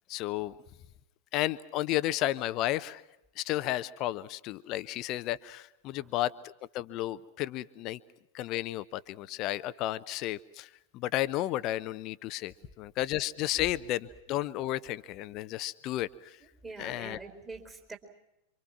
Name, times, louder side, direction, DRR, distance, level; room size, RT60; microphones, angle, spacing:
voice 1, 0.1-0.5 1.3-3.0 3.4-8.0 8.3-10.7 10.9-16.3 16.8-17.2, left 15 dB, 40° left, 16 dB, 0.8 m, -33 dB
voice 2, 16.4-18.0, right 3 dB, 15° right, 3 dB, 4.4 m, -45 dB
27.5 x 25.5 x 6.0 m, 0.88 s
figure-of-eight pair, 90°, 0 cm